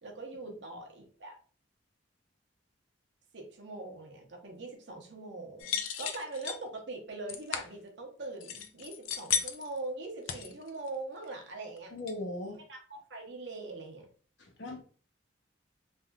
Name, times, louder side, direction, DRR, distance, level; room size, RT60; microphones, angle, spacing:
voice 1, 0.0-1.4 3.3-11.9 12.7-14.1, right 2 dB, 65° right, 0 dB, 0.9 m, -42 dB
sound 1, 5.6-6.6 7.3-7.7 8.4-9.8 10.3-10.9 11.2-11.3 11.8-11.9 12.1-12.2, left 8 dB, 85° left, 0.4 m, -34 dB
voice 2, 11.9-12.6 14.4-14.8, left 2 dB, 70° left, 1 dB, 0.9 m, -39 dB
3.4 x 2.6 x 2.3 m, 0.42 s
head